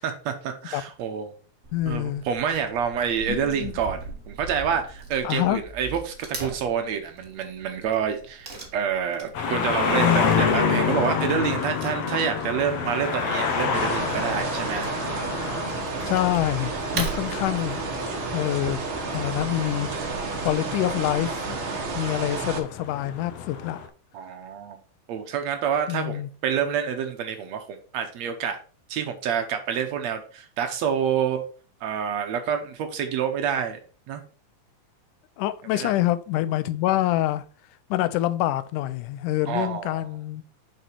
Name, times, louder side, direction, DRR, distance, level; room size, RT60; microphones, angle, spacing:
voice 1, 0.0-1.3 1.9-14.9 17.1-17.3 24.1-24.8 25.1-28.6 28.9-31.4 31.8-33.8 34.1-34.2 35.7-35.9 39.5-40.0, right 7 dB, 70° right, 6 dB, 1.9 m, -28 dB
Wood / Tearing, 1.6-21.3, right 3 dB, 35° right, 1.5 m, -41 dB
voice 2, 1.7-2.2 3.3-3.7 5.2-5.6 16.1-17.8 18.3-18.8 19.1-20.1 20.4-21.6 22.0-23.8 25.9-26.3 35.4-37.4 37.9-40.4, left 14 dB, 85° left, 14 dB, 2.1 m, -26 dB
sound 1, 9.3-23.9, left 6 dB, 65° left, 1.9 m, -28 dB
sound 2, 13.7-22.6, right 4 dB, 50° right, 1.7 m, -31 dB
6.6 x 5.8 x 4.4 m, 0.39 s
omnidirectional pair, 3.6 m